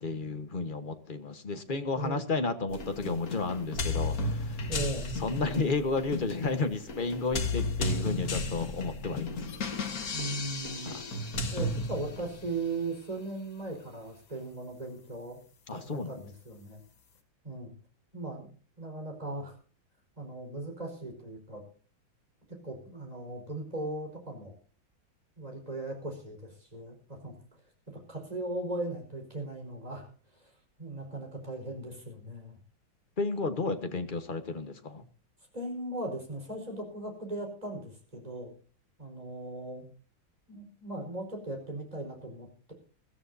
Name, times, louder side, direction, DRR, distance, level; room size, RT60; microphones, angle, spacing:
voice 1, 0.0-4.7 5.2-9.4 10.8-10.9 15.7-16.2 33.2-35.0, left 3 dB, 30° left, 8 dB, 1.2 m, -32 dB
sound 1, 2.7-12.6, left 2 dB, 50° left, 1.9 m, -34 dB
voice 2, 4.7-5.1 10.1-10.9 11.5-15.4 15.7-16.8 17.4-17.7 18.1-18.5 18.8-19.6 20.2-21.6 22.5-24.6 25.4-27.6 27.9-32.6 35.5-38.5 39.0-39.9 40.5-42.7, right 2 dB, 20° right, 2 dB, 4.9 m, -38 dB
22.0 x 14.0 x 2.7 m, 0.39 s
omnidirectional pair, 2.2 m